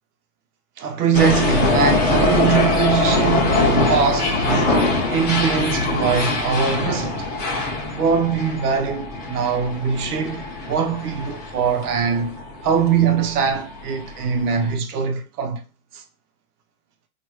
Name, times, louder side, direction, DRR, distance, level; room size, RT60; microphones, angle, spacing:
voice 1, 0.8-4.8 5.1-7.3 7.9-15.6 15.9-16.0, right 6 dB, 75° right, 1.0 m, -22 dB
sound 1, 1.1-14.7, left 2 dB, 20° left, 1.2 m, -23 dB
4.7 x 2.6 x 3.1 m
hypercardioid pair, 130°, 45 cm